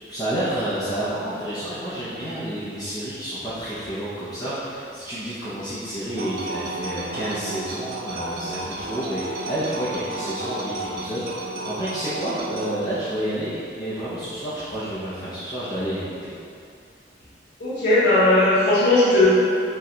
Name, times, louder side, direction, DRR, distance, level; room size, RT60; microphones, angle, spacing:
voice 1, 0.1-16.3, right 1 dB, 20° left, -11 dB, 0.6 m, -29 dB
sound 1, 6.2-12.8, right 2 dB, 55° right, 0.4 m, -32 dB
voice 2, 17.6-19.3, left 2 dB, 70° left, -13 dB, 0.8 m, -17 dB
4.6 x 2.2 x 3.8 m, 2.5 s
head